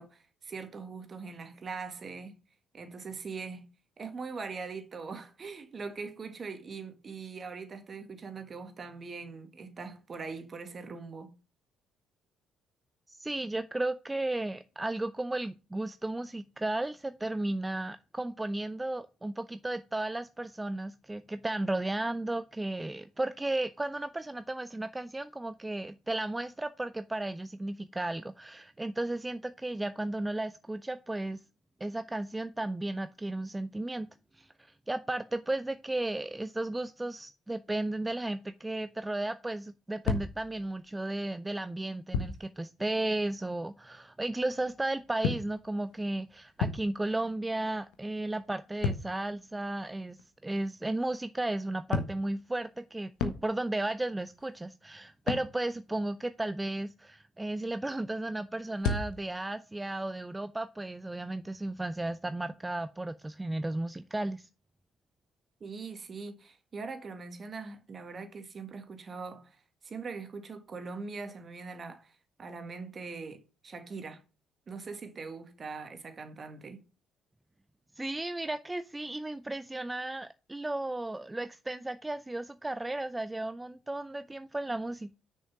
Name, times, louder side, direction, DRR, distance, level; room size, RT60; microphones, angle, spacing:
voice 1, 0.0-2.3 2.7-3.7 4.0-11.3 65.6-74.2 74.7-76.8, right 4 dB, 40° right, 1.7 m, -42 dB
voice 2, 13.1-31.4 31.8-34.1 34.3-50.2 50.4-64.5 78.0-85.1, right 2 dB, 15° right, 0.4 m, -34 dB
sound 1, 40.0-41.1 42.1-42.5 44.6-47.3 47.6-50.3 51.9-53.9 54.3-54.7 55.3-55.6 58.7-59.4, left 5 dB, 75° left, 1.0 m, -35 dB
6.4 x 5.5 x 6.0 m
hypercardioid pair, 50°, 0 cm